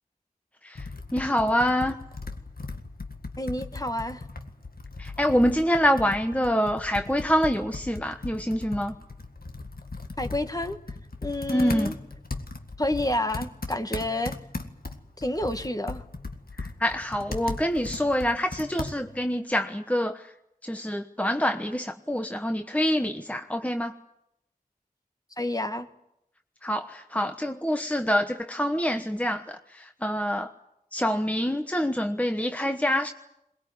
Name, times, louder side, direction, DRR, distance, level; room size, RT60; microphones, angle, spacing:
Computer keyboard, 0.7-19.3, left 3 dB, 85° left, 1.9 m, -38 dB
voice 1, 1.1-2.0 5.0-8.9 11.5-11.9 16.6-20.2 20.6-23.9 26.6-30.5 30.9-33.1, equal, 10° left, 6 dB, 1.2 m, -26 dB
voice 2, 3.4-4.2 10.2-10.8 11.2-12.0 12.8-14.4 15.2-16.0 25.4-25.9, left 1 dB, 25° left, 7 dB, 1.6 m, -29 dB
22.5 x 20.0 x 9.6 m, 0.82 s
wide cardioid pair, 45°, 15 cm